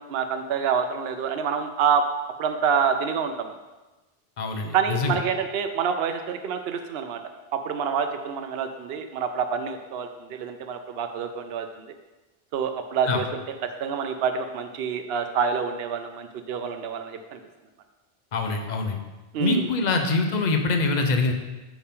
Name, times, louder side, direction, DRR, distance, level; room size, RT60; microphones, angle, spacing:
voice 1, 0.0-2.0 2.4-3.5 4.7-7.2 7.5-11.9 12.5-13.4 13.8-17.4 19.3-19.7, right 6 dB, 75° right, 7 dB, 0.8 m, -27 dB
voice 2, 4.4-5.2 13.1-13.2 18.3-19.0 19.4-21.3, left 3 dB, 45° left, 5 dB, 0.9 m, -24 dB
8.6 x 5.8 x 3.7 m, 1.1 s
omnidirectional pair, 1.1 m